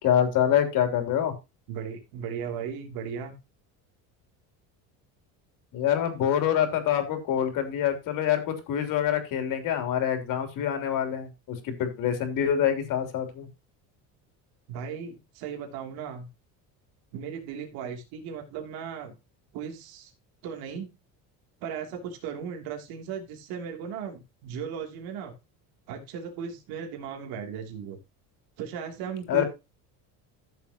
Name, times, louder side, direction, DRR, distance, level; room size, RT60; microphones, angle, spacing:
voice 1, 0.0-1.3 5.7-13.5 29.3-29.4, left 9 dB, 60° left, 6 dB, 3.3 m, -26 dB
voice 2, 1.7-3.3 14.7-16.3 17.1-19.1 19.5-20.1 20.4-20.9 21.6-25.3 25.9-28.0 28.6-29.4, right 7 dB, 70° right, 3 dB, 3.0 m, -36 dB
14.0 x 7.3 x 2.9 m, 0.26 s
cardioid pair, 135°, 37 cm